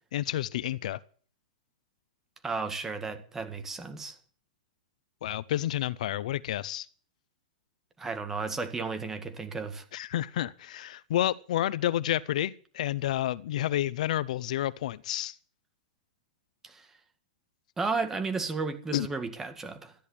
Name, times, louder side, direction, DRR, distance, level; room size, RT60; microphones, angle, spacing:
voice 1, 0.1-1.0 5.2-6.9 9.9-15.4 18.9-19.1, left 13 dB, 55° left, 0.6 m, -30 dB
voice 2, 2.4-4.2 8.0-9.9 16.6-16.9 17.8-19.9, right 4 dB, 10° right, 1.8 m, -33 dB
13.5 x 10.5 x 8.5 m
hypercardioid pair, 165°, 5 cm